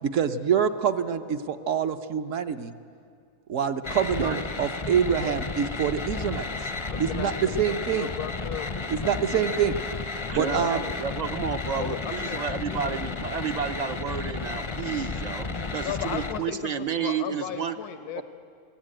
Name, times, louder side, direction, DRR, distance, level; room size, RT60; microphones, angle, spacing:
voice 1, 0.0-2.7 3.5-6.5 7.0-8.1 8.9-9.8 10.3-10.8 18.2-18.3, right 8 dB, 60° right, 8 dB, 1.1 m, -26 dB
sound 1, 3.8-16.4, left 4 dB, 30° left, 0.5 m, -33 dB
voice 2, 6.9-9.4 10.3-10.9 11.8-13.2 15.8-18.2, left 10 dB, 85° left, 9 dB, 1.4 m, -37 dB
voice 3, 10.3-17.7, right 7 dB, 45° right, 9 dB, 0.5 m, -31 dB
22.0 x 16.5 x 8.8 m, 2.4 s
omnidirectional pair, 1.6 m